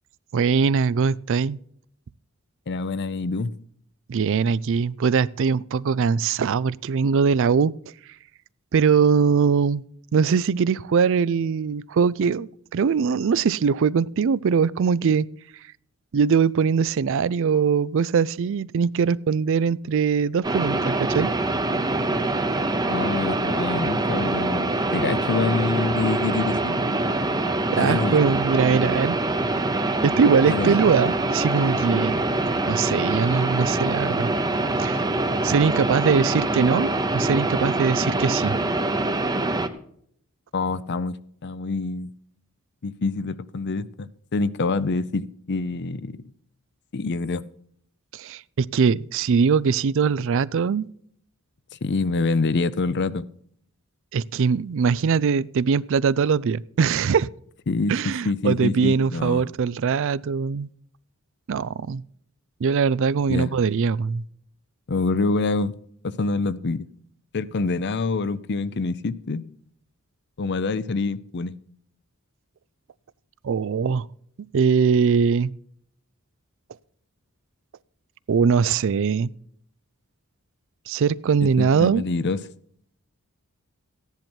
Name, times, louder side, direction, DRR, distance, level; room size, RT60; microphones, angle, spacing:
voice 1, 0.3-1.6 4.1-7.7 8.7-9.8 10.1-15.3 16.1-21.3 27.7-29.2 29.8-32.2 32.7-34.3 34.8-35.0 35.4-38.6 48.1-50.9 54.1-57.3 57.9-60.7 61.5-62.0 62.6-64.2 73.4-74.1 74.5-75.5 78.3-79.3 80.9-82.0, right 6 dB, 60° right, 0.4 m, -21 dB
voice 2, 2.7-3.5 22.9-26.8 27.8-28.2 30.4-30.8 40.5-41.2 41.4-42.1 42.8-46.2 46.9-47.4 51.8-53.3 57.7-59.5 63.3-63.5 64.9-65.7 66.0-66.9 67.3-69.4 70.4-71.5 81.6-82.4, left 3 dB, 50° left, 0.6 m, -26 dB
sound 1, 20.4-39.7, right 2 dB, 20° right, 0.8 m, -24 dB
14.5 x 10.5 x 4.5 m
head